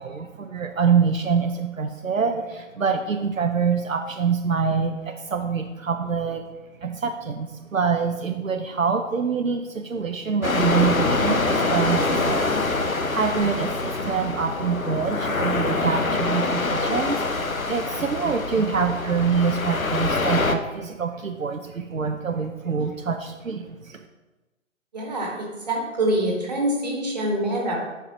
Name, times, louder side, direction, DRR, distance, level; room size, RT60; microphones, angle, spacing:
voice 1, 0.0-6.5 6.8-17.3 17.7-24.1, right 6 dB, 75° right, 5 dB, 0.7 m, -25 dB
sound 1, 10.4-20.6, left 3 dB, 90° left, 0.8 m, -25 dB
voice 2, 24.9-27.8, right 1 dB, 30° right, -1 dB, 1.5 m, -25 dB
9.9 x 4.8 x 2.9 m, 1.1 s
figure-of-eight pair, 150°, 40 cm